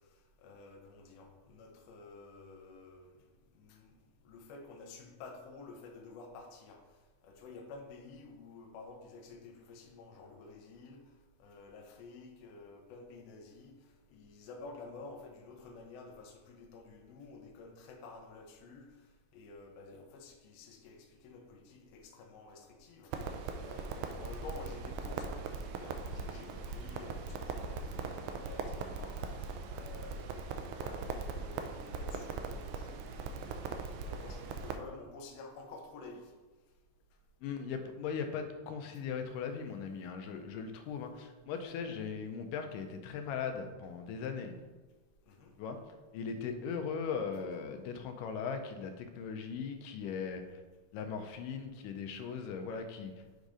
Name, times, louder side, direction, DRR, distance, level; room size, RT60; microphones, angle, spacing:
voice 1, 0.1-3.2 3.5-4.0 4.2-6.8 7.2-11.0 11.4-23.1 23.6-36.3 45.3-45.5, left 3 dB, 70° left, 3 dB, 1.6 m, -51 dB
Crackle, 23.1-34.8, right 4 dB, 80° right, 1.9 m, -40 dB
voice 2, 37.4-44.5 45.6-45.8 46.1-50.6 50.9-53.1, left 6 dB, 85° left, 6 dB, 2.3 m, -39 dB
7.3 x 3.9 x 4.9 m, 1.3 s
omnidirectional pair, 3.8 m